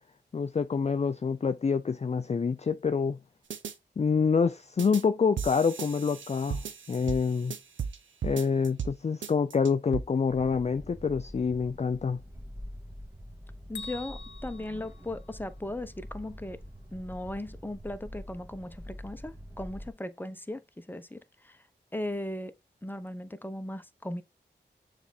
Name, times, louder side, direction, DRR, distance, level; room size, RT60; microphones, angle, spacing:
voice 1, 0.3-3.2 4.0-7.5 8.2-12.2, left 5 dB, 35° left, 0.4 m, -27 dB
sound 1, 3.5-3.7 4.8-5.0 5.4-8.0 8.2-8.9 9.2-10.0, right 7 dB, 90° right, 0.7 m, -36 dB
sound 2, 10.3-19.9, equal, 15° right, 1.6 m, -45 dB
Bell, 13.7-15.8, left 5 dB, 80° left, 0.7 m, -45 dB
voice 2, 13.7-16.6 16.9-21.7 21.9-22.5 22.8-24.2, left 1 dB, 10° left, 0.9 m, -37 dB
6.9 x 3.4 x 4.1 m
cardioid pair, 40°, 19 cm